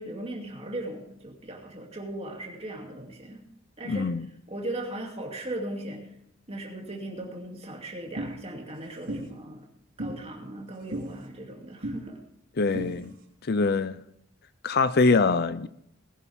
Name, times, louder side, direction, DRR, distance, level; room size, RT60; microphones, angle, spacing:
voice 1, 0.0-3.4 3.8-4.1 4.5-6.1 6.5-9.7 10.0-12.2, right 1 dB, 30° right, 2.7 m, -38 dB
voice 2, 3.9-4.3 12.6-13.1 13.5-14.0 14.6-15.7, left 3 dB, 50° left, 0.5 m, -23 dB
sound 1, 8.2-8.3 9.1-9.2 10.0-10.1 10.9-11.1 11.8-12.0 12.7-12.9, right 1 dB, 70° right, 3.4 m, -32 dB
20.0 x 11.0 x 3.6 m
head